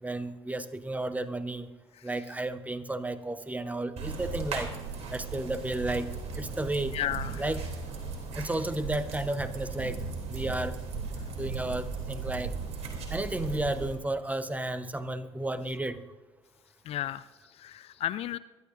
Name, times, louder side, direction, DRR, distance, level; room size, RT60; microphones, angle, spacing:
voice 1, 0.0-1.7 2.0-4.7 5.1-6.1 6.3-7.0 7.4-7.6 8.3-10.0 10.3-10.8 11.3-12.5 13.1-16.0, right 2 dB, 10° right, 12 dB, 0.9 m, -32 dB
sound 1, 4.0-14.0, right 4 dB, 50° right, 2.9 m, -37 dB
voice 2, 6.9-7.5 16.9-18.4, left 13 dB, 45° left, 16 dB, 0.4 m, -34 dB
23.5 x 11.5 x 2.5 m, 1.2 s
figure-of-eight pair, 60°, 14 cm